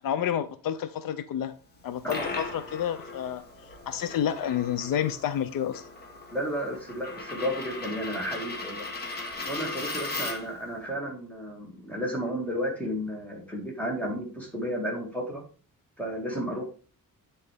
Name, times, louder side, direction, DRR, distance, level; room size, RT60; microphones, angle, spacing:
voice 1, 0.0-1.5 1.8-3.4 3.9-5.8, left 9 dB, 75° left, 0.6 m, -29 dB
Coin (dropping), 1.7-10.6, left 3 dB, 30° left, 1.3 m, -38 dB
voice 2, 6.3-15.4 16.0-16.7, equal, 5° left, 2.1 m, -33 dB
9.7 x 4.1 x 3.4 m
wide cardioid pair, 160°, 34 cm